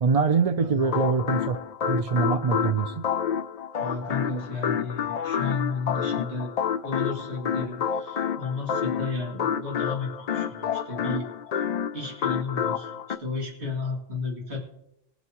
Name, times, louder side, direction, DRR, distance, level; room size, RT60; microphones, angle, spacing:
voice 1, 0.0-1.6 1.8-3.1, right 5 dB, 45° right, 7 dB, 0.5 m, -24 dB
voice 2, 0.6-1.1 3.8-6.5 6.8-11.6 11.9-12.9 13.2-14.6, left 4 dB, 85° right, -2 dB, 2.7 m, -33 dB
jazzy steppin (consolidated), 0.8-13.2, left 8 dB, 55° left, 0.4 m, -29 dB
21.5 x 8.1 x 2.9 m, 0.82 s
omnidirectional pair, 1.1 m